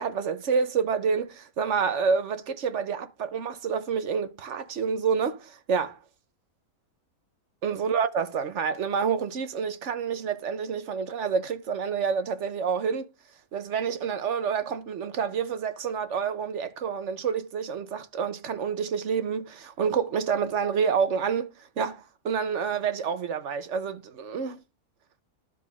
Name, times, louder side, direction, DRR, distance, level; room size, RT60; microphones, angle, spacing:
voice 1, 0.0-6.0 7.6-13.1 13.5-24.6, right 6 dB, 55° right, 1.1 m, -28 dB
13.5 x 4.6 x 4.8 m
omnidirectional pair, 1.6 m